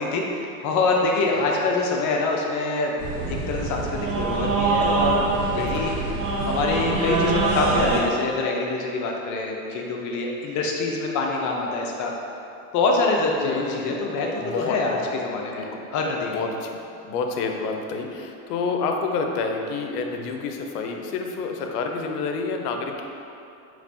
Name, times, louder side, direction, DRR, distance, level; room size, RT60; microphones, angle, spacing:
voice 1, 0.0-2.9 3.3-5.9 6.5-12.1 12.7-16.4, left 3 dB, 40° left, 0 dB, 0.6 m, -25 dB
sound 1, 3.0-8.0, right 3 dB, 85° right, 0.9 m, -24 dB
voice 2, 5.5-5.9 13.4-14.1 14.4-15.1 15.5-15.8 16.3-16.8 17.0-23.0, left 4 dB, 80° left, 3 dB, 0.6 m, -29 dB
5.1 x 3.0 x 2.6 m, 2.7 s
hypercardioid pair, 95°, 46 cm